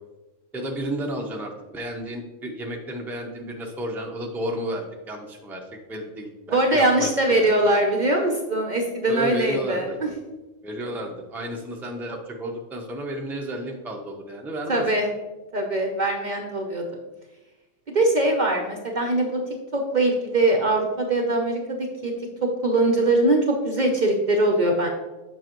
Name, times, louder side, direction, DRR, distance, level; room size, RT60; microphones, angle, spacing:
voice 1, 0.5-7.5 9.1-10.0 10.6-14.9, right 1 dB, ahead, 1 dB, 0.6 m, -32 dB
voice 2, 6.5-10.1 14.7-15.1 15.5-17.0 17.9-19.4 19.7-22.1 22.4-24.9, right 1 dB, 45° right, 2 dB, 0.7 m, -22 dB
7.4 x 5.8 x 3.0 m, 1.1 s
omnidirectional pair, 1.3 m